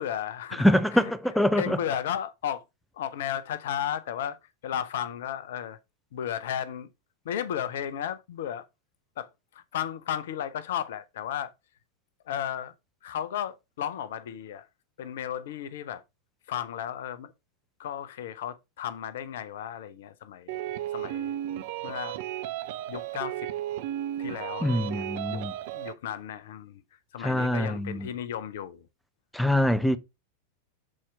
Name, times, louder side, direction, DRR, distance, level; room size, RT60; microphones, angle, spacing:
voice 1, 0.0-0.7 0.9-1.1 1.5-2.6 3.0-4.4 4.6-5.8 6.1-6.9 7.2-8.7 9.2-11.5 12.3-12.7 13.0-14.7 15.0-16.0 16.5-17.3 17.8-20.6 20.9-21.4 21.8-22.2 22.9-23.5 24.2-25.4 25.7-26.8 27.1-28.9, left 10 dB, 55° left, 0.7 m, -34 dB
voice 2, 0.5-1.8 24.6-25.5 27.2-28.1 29.3-30.0, left 1 dB, ahead, 0.7 m, -24 dB
sound 1, 20.5-25.9, right 12 dB, 50° right, 0.7 m, -34 dB
7.5 x 4.3 x 4.6 m
figure-of-eight pair, 90°, 0 cm